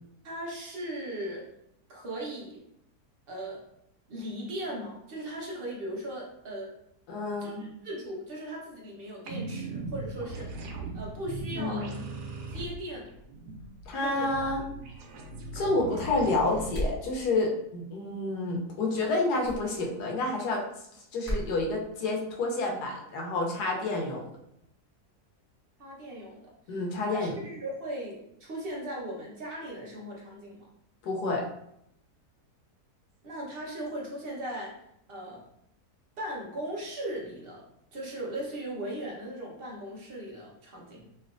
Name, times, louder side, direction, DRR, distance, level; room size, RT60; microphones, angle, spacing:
voice 1, 0.2-1.4 1.9-2.6 3.3-3.6 4.1-6.7 7.4-10.6 10.9-11.9 12.5-13.1 14.0-14.3 25.8-26.4 26.7-26.8 27.0-30.7 33.2-34.7 35.1-35.4 36.2-37.6 37.9-41.1, right 1 dB, 45° right, -3 dB, 0.9 m, -38 dB
voice 2, 7.1-7.7 11.6-12.0 13.9-14.6 15.5-20.6 21.1-24.2 26.7-27.4 31.0-31.4, left 2 dB, 75° left, 0 dB, 1.3 m, -29 dB
sound 1, 9.3-16.7, right 2 dB, 85° right, 1.2 m, -39 dB
sound 2, 16.7-17.1 19.4-19.6 21.2-21.5, equal, 15° left, 0.8 m, -31 dB
3.2 x 3.1 x 2.4 m, 0.76 s
omnidirectional pair, 1.7 m